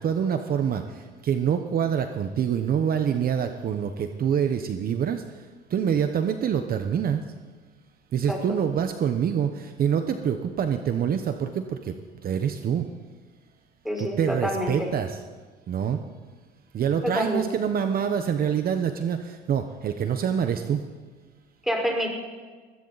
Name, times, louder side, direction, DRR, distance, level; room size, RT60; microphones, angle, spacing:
voice 1, 0.0-7.2 8.1-11.9 12.2-12.9 14.0-15.2 15.7-16.0 16.7-20.8, right 8 dB, 50° right, 7 dB, 1.1 m, -26 dB
voice 2, 13.8-14.9 17.0-17.5 21.6-22.1, equal, ahead, 1 dB, 4.9 m, -27 dB
21.0 x 16.5 x 4.2 m, 1.4 s
supercardioid pair, 90°, 20 cm